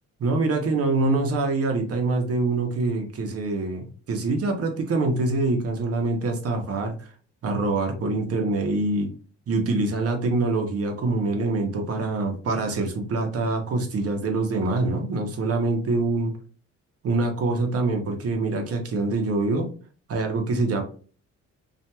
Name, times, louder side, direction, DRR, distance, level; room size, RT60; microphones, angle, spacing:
voice 1, 0.2-7.1 7.4-9.1 9.5-16.3 17.0-19.7 20.1-20.8, right 3 dB, 50° right, 4 dB, 0.8 m, -25 dB
2.8 x 2.5 x 2.2 m, 0.39 s
cardioid pair, 90°, 30 cm